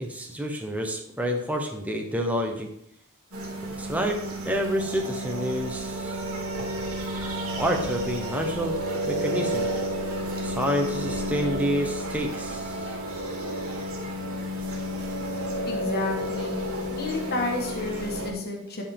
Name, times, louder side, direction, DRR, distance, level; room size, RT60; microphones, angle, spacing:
voice 1, 0.0-2.7 3.8-4.2 4.4-6.2 7.6-8.8 9.0-9.7 10.4-12.9, equal, 5° right, 2 dB, 0.8 m, -28 dB
sound 1, 3.3-18.3, equal, 70° right, 1.9 m, -31 dB
voice 2, 15.6-16.6 16.9-18.8, left 2 dB, 45° left, 1 dB, 1.3 m, -31 dB
10.5 x 4.8 x 3.5 m, 0.73 s
head